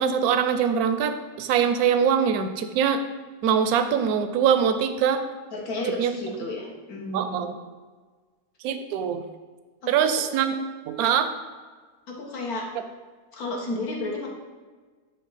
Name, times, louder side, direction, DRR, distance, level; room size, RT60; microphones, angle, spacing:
voice 1, 0.0-3.0 3.4-5.2 6.0-6.1 7.1-7.5 8.6-9.2 9.9-10.6 10.9-11.3, right 7 dB, 75° right, 9 dB, 1.1 m, -23 dB
voice 2, 5.5-7.5 9.8-10.2 12.1-12.7 13.3-14.3, left 2 dB, 65° left, -1 dB, 1.8 m, -32 dB
11.0 x 3.9 x 4.1 m, 1.4 s
omnidirectional pair, 1.7 m